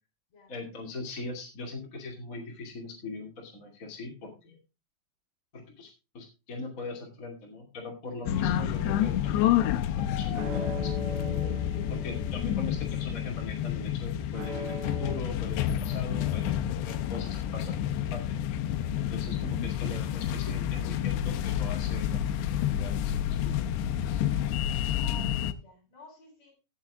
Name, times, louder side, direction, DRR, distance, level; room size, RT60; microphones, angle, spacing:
voice 1, 0.5-4.6 5.5-5.9 6.1-11.2 11.9-18.2 19.1-22.3 22.7-23.7, left 3 dB, 25° left, 0 dB, 2.1 m, -41 dB
sound 1, 8.3-25.5, left 10 dB, 90° left, 2.9 m, -29 dB
sound 2, 9.3-15.2, left 2 dB, 60° right, 1.5 m, -40 dB
voice 2, 25.0-26.5, left 2 dB, 40° left, 4 dB, 5.0 m, -51 dB
16.5 x 7.2 x 3.6 m, 0.29 s
omnidirectional pair, 4.8 m